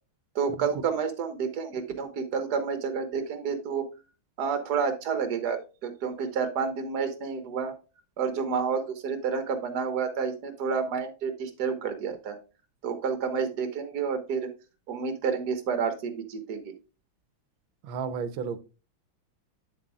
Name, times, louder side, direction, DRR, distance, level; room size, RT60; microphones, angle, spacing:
voice 1, 0.3-3.8 4.4-7.7 8.2-12.4 12.8-14.5 14.9-16.7, right 6 dB, 55° right, 8 dB, 1.6 m, -29 dB
voice 2, 17.8-18.6, right 6 dB, 85° right, 14 dB, 1.5 m, -33 dB
8.7 x 7.5 x 2.3 m, 0.32 s
omnidirectional pair, 2.2 m